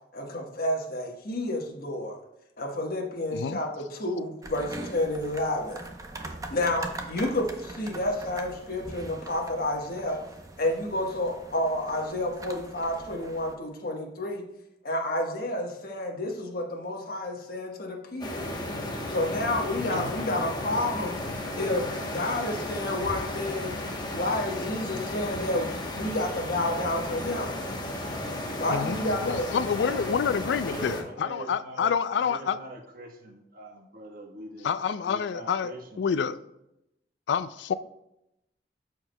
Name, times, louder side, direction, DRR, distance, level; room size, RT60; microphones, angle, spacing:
voice 1, 0.1-2.2 2.6-5.9 6.5-10.2 10.6-14.4 14.8-18.5 19.1-21.2 21.6-23.8 24.1-27.5 28.6-29.5, left 1 dB, 60° left, 1.3 m, -30 dB
sound 1, 4.4-13.6, right 2 dB, 20° right, 0.7 m, -42 dB
sound 2, 18.2-31.0, left 1 dB, 25° left, 1.0 m, -34 dB
voice 2, 28.7-32.6 34.6-35.7 36.0-36.4 37.3-37.7, left 6 dB, 75° left, 0.3 m, -28 dB
voice 3, 29.7-36.1, right 2 dB, 55° right, 1.3 m, -43 dB
13.0 x 4.6 x 2.2 m
head